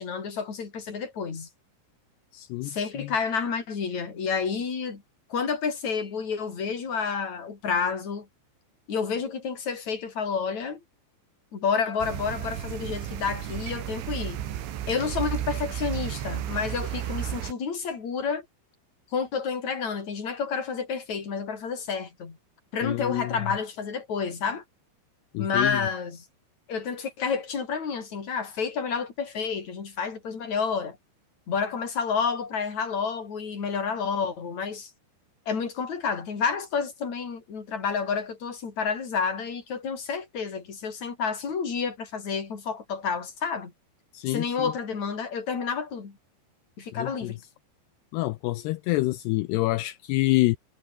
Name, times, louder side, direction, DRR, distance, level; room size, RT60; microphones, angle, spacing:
voice 1, 0.0-1.5 2.6-5.0 5.3-8.3 8.9-10.8 11.5-14.4 14.9-18.5 19.1-22.4 22.7-24.6 25.4-26.2 26.7-31.0 31.5-34.9 35.5-43.7 44.3-46.2 46.8-47.4, left 5 dB, 40° left, 5.3 m, -30 dB
voice 2, 2.3-3.1 22.8-23.4 25.3-25.8 44.1-44.7 46.9-47.3 48.1-50.6, left 19 dB, 90° left, 2.4 m, -27 dB
sound 1, 12.0-17.5, right 11 dB, 90° right, 4.7 m, -33 dB
omnidirectional pair, 5.4 m